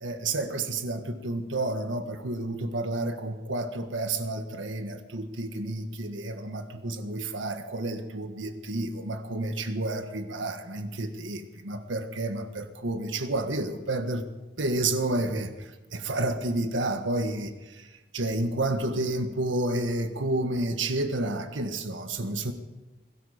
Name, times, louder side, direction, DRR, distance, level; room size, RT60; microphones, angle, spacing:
voice 1, 0.0-14.2 14.6-15.5 15.9-17.9 18.1-22.5, right 2 dB, 85° right, 7 dB, 1.6 m, -30 dB
21.0 x 13.0 x 5.1 m, 1.1 s
head